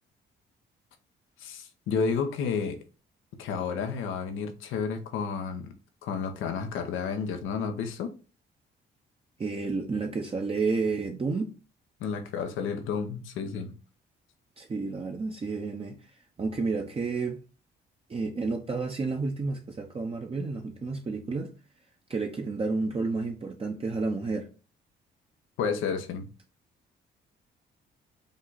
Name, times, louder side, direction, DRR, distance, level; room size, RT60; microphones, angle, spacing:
voice 1, 1.4-2.8 3.4-5.7 6.0-8.1 12.0-13.8 25.6-26.3, left 5 dB, 85° left, 0.9 m, -31 dB
voice 2, 9.4-11.5 14.6-16.0 16.4-17.4 18.1-21.5 22.1-24.5, right 4 dB, 30° right, 0.7 m, -30 dB
5.2 x 2.4 x 3.9 m
cardioid pair, 90°, 20 cm